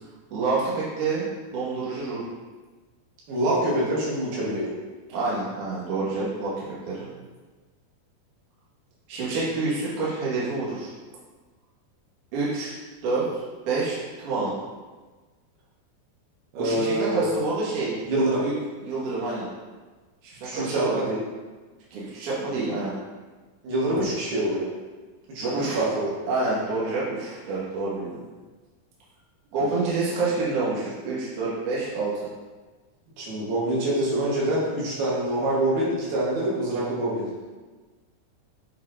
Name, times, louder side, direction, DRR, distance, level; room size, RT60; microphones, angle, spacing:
voice 1, 0.3-2.2 5.1-7.1 9.1-10.9 12.3-12.7 13.0-13.3 13.7-14.5 16.6-18.0 18.4-18.5 18.8-19.5 20.2-21.0 21.9-22.9 25.4-25.8 26.3-28.2 29.5-32.1, right 3 dB, 60° right, -8 dB, 2.7 m, -28 dB
voice 2, 3.3-4.7 16.5-17.2 18.0-18.4 20.4-21.2 23.6-24.7 25.3-25.4 25.7-26.1 33.2-37.3, right 1 dB, 75° right, -7 dB, 3.3 m, -25 dB
9.4 x 4.1 x 2.6 m, 1.3 s
omnidirectional pair, 4.6 m